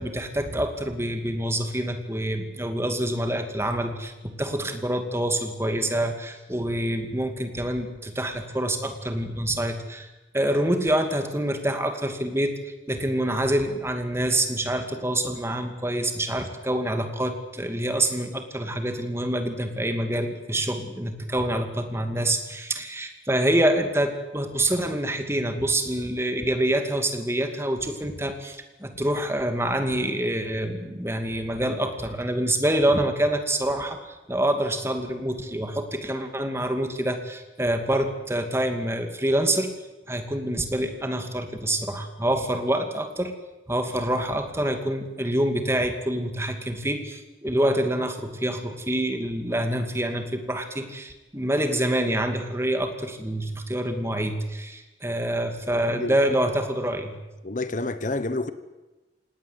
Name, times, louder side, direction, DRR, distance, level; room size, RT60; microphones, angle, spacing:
voice 1, 0.0-39.7 40.1-43.3 43.7-57.2, right 1 dB, 15° right, 6 dB, 2.6 m, -26 dB
voice 2, 57.4-58.5, left 2 dB, 45° left, 12 dB, 1.2 m, -28 dB
27.0 x 19.0 x 8.2 m, 1.1 s
head